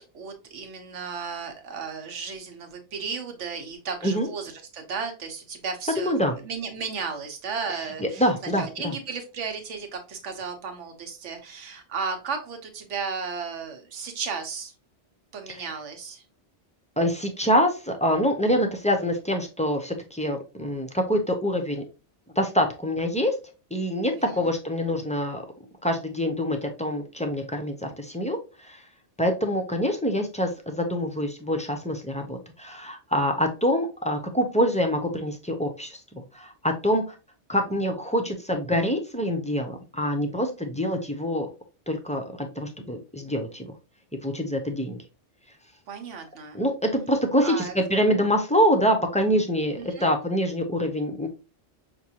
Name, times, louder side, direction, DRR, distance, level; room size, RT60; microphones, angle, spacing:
voice 1, 0.0-8.3 8.6-14.7 15.3-16.2 45.9-46.6 47.4-47.7 49.7-50.1, right 5 dB, 85° right, 5 dB, 1.2 m, -34 dB
voice 2, 6.0-6.4 8.0-8.9 15.5-15.7 17.0-21.8 22.4-23.3 23.7-25.4 25.8-28.4 28.6-28.8 29.2-37.0 37.5-41.5 41.9-43.7 44.2-45.0 46.5-51.3, equal, 10° left, 4 dB, 0.4 m, -25 dB
5.8 x 2.6 x 2.8 m, 0.31 s
omnidirectional pair, 1.2 m